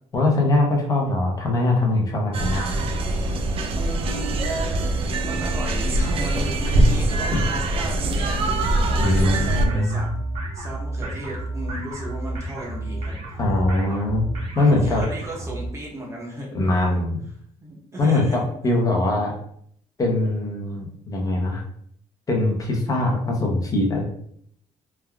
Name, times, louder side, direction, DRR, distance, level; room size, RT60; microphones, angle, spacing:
voice 1, 0.1-2.8 7.3-7.4 9.0-10.0 13.4-14.2 14.5-15.0 16.5-17.2 18.0-19.4 20.0-21.6 22.3-24.0, left 2 dB, 25° left, 0 dB, 0.7 m, -22 dB
sound 1, 2.3-9.7, right 2 dB, 45° right, 0.4 m, -23 dB
voice 2, 3.8-4.4 5.3-10.1 10.5-13.2 14.6-16.5 17.6-18.7, right 1 dB, 20° right, -2 dB, 0.7 m, -35 dB
sound 2, 8.6-15.7, right 2 dB, 60° right, 1.0 m, -31 dB
3.3 x 2.2 x 2.2 m, 0.67 s
cardioid pair, 140°, 13 cm